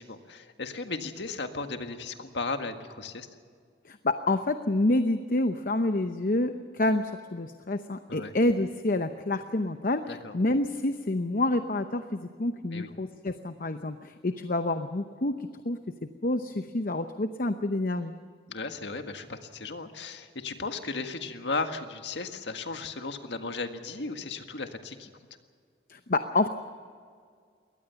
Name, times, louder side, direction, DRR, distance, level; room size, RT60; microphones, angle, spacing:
voice 1, 0.0-3.3 8.1-8.3 10.1-10.3 12.7-12.9 18.5-25.1, left 3 dB, 75° left, 6 dB, 1.7 m, -35 dB
voice 2, 3.8-18.2 25.9-26.5, left 2 dB, 50° left, 8 dB, 0.8 m, -28 dB
22.5 x 19.0 x 7.0 m, 2.1 s
head